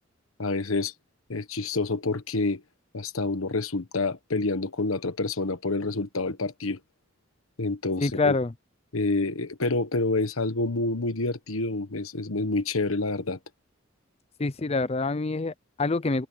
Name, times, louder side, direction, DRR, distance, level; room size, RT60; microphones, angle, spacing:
voice 1, 0.4-0.9 1.3-2.6 2.9-6.8 7.6-8.4 8.9-13.4, left 3 dB, 85° left, 1.3 m, -28 dB
voice 2, 8.0-8.5 14.4-16.3, left 3 dB, 30° left, 0.5 m, -26 dB
open air
head